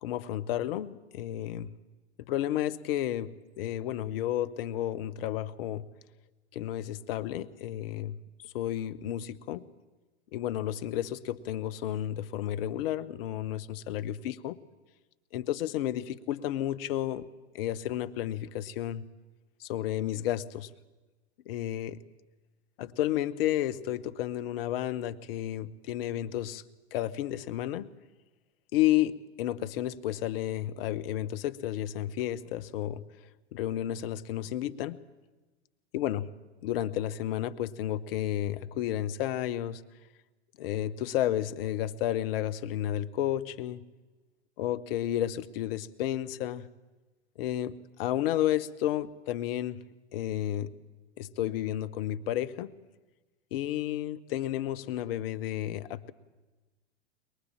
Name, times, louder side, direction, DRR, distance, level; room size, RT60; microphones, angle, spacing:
voice 1, 0.0-1.7 2.3-5.8 6.5-8.2 8.4-9.6 10.3-14.6 15.3-17.3 17.5-19.0 19.6-20.7 21.5-22.0 22.8-26.6 26.9-27.9 28.7-33.0 33.5-35.0 35.9-36.3 36.6-39.8 40.6-43.8 44.6-46.7 47.4-49.8 50.1-50.7 51.2-52.7 53.5-56.1, left 12 dB, 55° left, 14 dB, 1.2 m, -32 dB
23.0 x 22.0 x 7.4 m, 1.2 s
hypercardioid pair, 100°, 34 cm